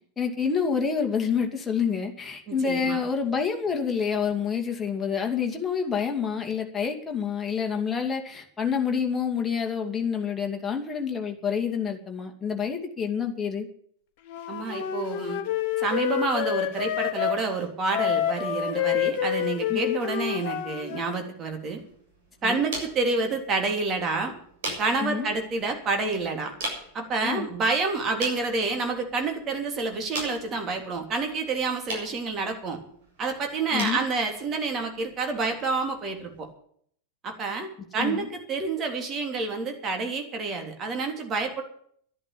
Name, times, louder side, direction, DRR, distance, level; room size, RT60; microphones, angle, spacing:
voice 1, 0.2-13.7 19.7-20.0 22.4-22.6 25.0-25.3 27.2-27.5 33.7-34.0 38.0-38.3, left 6 dB, 15° left, 1 dB, 2.5 m, -28 dB
voice 2, 2.5-3.0 14.5-15.4 15.8-21.8 22.4-24.3 24.8-26.5 26.9-32.8 33.2-36.5 37.2-41.6, right 3 dB, 30° right, 4 dB, 3.3 m, -28 dB
Wind instrument woodwind instrument, 14.3-17.4 17.9-21.2, left 10 dB, 45° left, 1.5 m, -28 dB
sound 1, 21.5-36.5, right 1 dB, 55° right, 7.2 m, -42 dB
12.0 x 11.0 x 8.5 m, 0.62 s
figure-of-eight pair, 90°, 0 cm